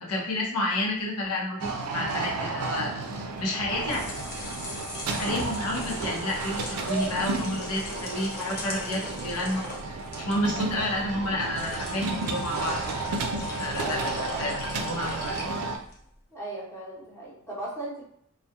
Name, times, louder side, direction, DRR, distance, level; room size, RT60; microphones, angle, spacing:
voice 1, 0.0-3.0 3.4-4.0 5.2-12.9 13.6-14.1 14.4-15.3, left 1 dB, 85° left, -2 dB, 0.7 m, -30 dB
sound 1, 1.6-15.8, right 3 dB, 90° right, 0.4 m, -32 dB
sound 2, 3.7-16.0, left 1 dB, 45° left, 0.6 m, -39 dB
voice 2, 13.8-14.1 16.3-18.0, right 1 dB, 10° left, -6 dB, 0.7 m, -37 dB
2.3 x 2.1 x 2.8 m, 0.71 s
head